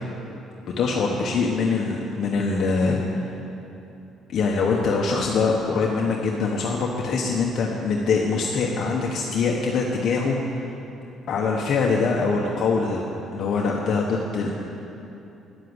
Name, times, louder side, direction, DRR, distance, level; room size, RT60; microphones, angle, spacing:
voice 1, 0.8-3.3 4.3-10.8 11.3-13.0 13.3-14.5, left 4 dB, 60° left, -1 dB, 1.3 m, -23 dB
11.5 x 11.0 x 8.1 m, 2.9 s
cardioid pair, 110°, 0 cm